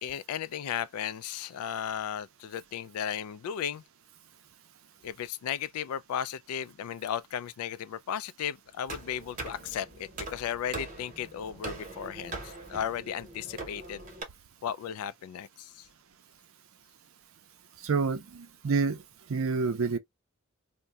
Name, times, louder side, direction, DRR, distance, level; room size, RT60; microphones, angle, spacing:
voice 1, 0.0-3.8 5.0-14.0 14.6-15.9, left 9 dB, 80° left, 0.3 m, -35 dB
sound 1, 8.9-14.2, right 3 dB, 35° right, 0.9 m, -42 dB
voice 2, 17.8-19.0 19.3-20.0, right 4 dB, 70° right, 0.5 m, -28 dB
2.6 x 2.1 x 3.2 m
head